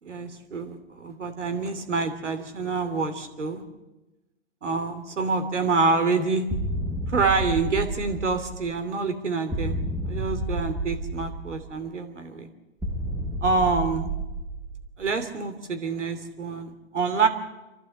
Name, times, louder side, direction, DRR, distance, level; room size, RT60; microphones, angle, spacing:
voice 1, 0.0-3.6 4.6-6.4 7.1-9.8 10.0-12.5 13.4-14.1 15.0-17.3, right 4 dB, 85° right, 8 dB, 3.0 m, -27 dB
sound 1, 6.5-8.8 9.5-11.8 12.8-15.1, right 1 dB, ahead, 0.7 m, -31 dB
28.0 x 12.0 x 8.5 m, 1.1 s
hypercardioid pair, 140°, 35 cm